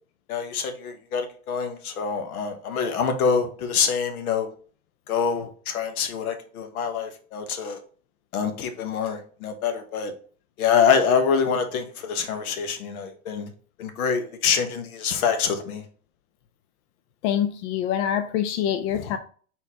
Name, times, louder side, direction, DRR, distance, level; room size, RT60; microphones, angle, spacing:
voice 1, 0.3-4.5 5.1-7.8 8.3-10.1 10.6-13.5 13.8-15.8 18.9-19.1, left 6 dB, 80° left, 7 dB, 1.1 m, -25 dB
voice 2, 17.2-19.2, left 9 dB, 55° left, 7 dB, 0.5 m, -25 dB
4.1 x 4.0 x 2.8 m, 0.43 s
supercardioid pair, 135°, 43 cm